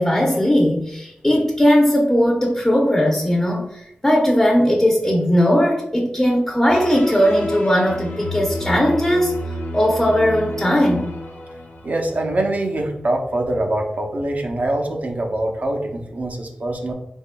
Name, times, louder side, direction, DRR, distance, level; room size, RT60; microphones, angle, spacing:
voice 1, 0.0-9.4 9.7-11.1, equal, 15° left, -1 dB, 0.7 m, -18 dB
sound 1, 6.7-12.5, left 1 dB, 85° left, 0.8 m, -31 dB
voice 2, 11.8-16.9, right 1 dB, 55° right, 2 dB, 0.7 m, -24 dB
3.9 x 3.6 x 2.2 m, 0.84 s
wide cardioid pair, 85°, 3 cm